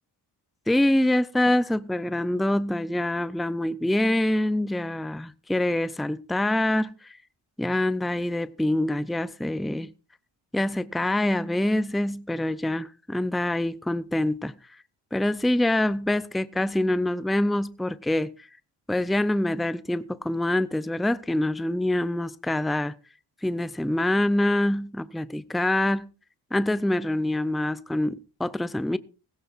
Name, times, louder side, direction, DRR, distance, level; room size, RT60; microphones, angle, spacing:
voice 1, 0.7-7.2 7.6-9.9 10.5-14.5 15.1-18.3 18.9-23.0 23.4-26.0 26.5-29.0, left 1 dB, ahead, 0.5 m, -25 dB
17.0 x 15.0 x 2.5 m
cardioid pair, 80°, 41 cm